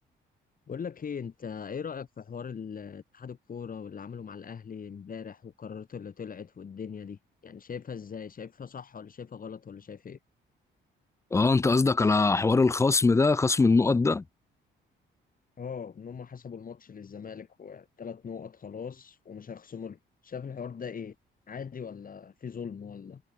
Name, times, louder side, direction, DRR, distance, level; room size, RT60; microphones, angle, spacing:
voice 1, 0.7-10.2 15.6-21.1 21.5-23.2, left 6 dB, 45° left, 4.6 m, -40 dB
voice 2, 11.3-14.2, left 3 dB, 15° left, 0.3 m, -22 dB
cardioid pair, 90°, 20 cm